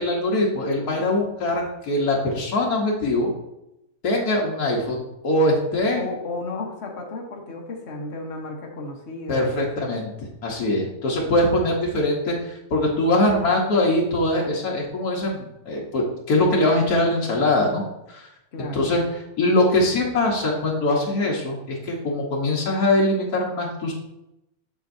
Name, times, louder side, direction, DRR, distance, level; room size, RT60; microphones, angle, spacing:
voice 1, 0.0-3.3 4.0-6.1 9.3-10.1 10.4-17.8 18.1-18.3 18.6-19.0 19.4-23.9, left 1 dB, 85° left, -3 dB, 1.6 m, -22 dB
voice 2, 5.9-9.9 18.5-18.9, left 2 dB, 50° left, -1 dB, 1.3 m, -33 dB
7.3 x 7.0 x 2.6 m, 0.89 s
omnidirectional pair, 1.6 m